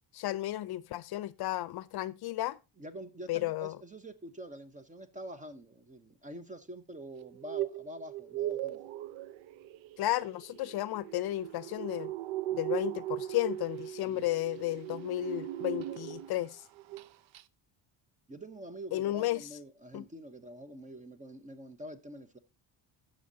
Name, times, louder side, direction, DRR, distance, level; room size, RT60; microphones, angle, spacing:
voice 1, 0.1-2.6 3.3-3.8 10.0-12.1 12.5-16.6 18.9-19.5 19.9-20.0, left 15 dB, 55° left, 0.6 m, -33 dB
voice 2, 2.8-8.8 14.0-14.3 18.3-22.4, right 1 dB, 15° right, 0.8 m, -46 dB
sound 1, 7.2-16.5 16.8-17.1 17.3-17.4, right 13 dB, 90° right, 0.6 m, -38 dB
16.5 x 6.4 x 2.7 m
cardioid pair, 145°, 45 cm